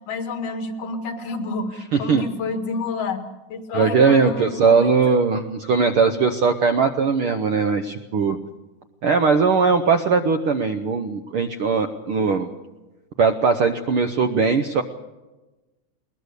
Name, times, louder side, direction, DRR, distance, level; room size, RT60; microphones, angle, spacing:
voice 1, 0.1-3.2 3.5-5.2, left 3 dB, 90° left, 6 dB, 3.5 m, -29 dB
voice 2, 1.9-2.2 3.7-8.4 9.0-12.5 13.2-14.8, right 5 dB, 70° right, 7 dB, 1.3 m, -19 dB
21.5 x 20.0 x 6.7 m, 1.1 s
omnidirectional pair, 3.6 m